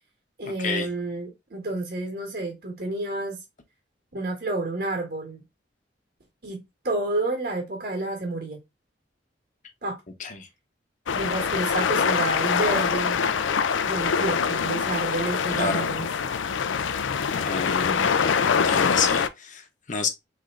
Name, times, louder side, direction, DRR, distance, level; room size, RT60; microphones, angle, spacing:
voice 1, 0.4-3.4 4.1-5.4 6.4-8.6 9.8-10.0 11.1-13.2 13.8-16.1, right 2 dB, 55° right, 1.6 m, -30 dB
sound 1, 11.1-19.3, left 6 dB, 80° left, 0.5 m, -24 dB
voice 2, 15.5-15.9 17.3-18.1 18.4-20.1, left 5 dB, 40° left, 0.9 m, -30 dB
3.7 x 3.3 x 3.7 m
head